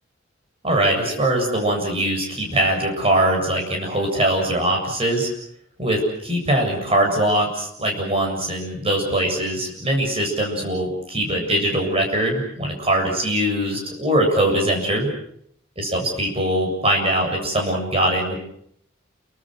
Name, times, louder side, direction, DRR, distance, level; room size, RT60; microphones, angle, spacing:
voice 1, 0.6-5.3 5.8-15.1 15.8-18.4, right 1 dB, 30° right, 2 dB, 7.6 m, -22 dB
30.0 x 24.0 x 6.6 m, 0.68 s
head